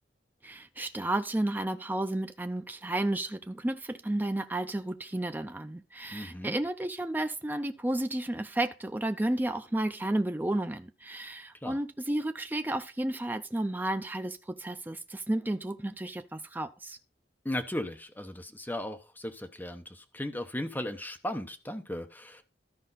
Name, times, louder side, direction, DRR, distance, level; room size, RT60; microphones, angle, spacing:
voice 1, 0.4-17.0, right 1 dB, 10° right, 0.5 m, -32 dB
voice 2, 6.1-6.6 11.6-11.8 17.4-22.4, left 1 dB, 10° left, 0.9 m, -36 dB
13.5 x 5.2 x 4.1 m
head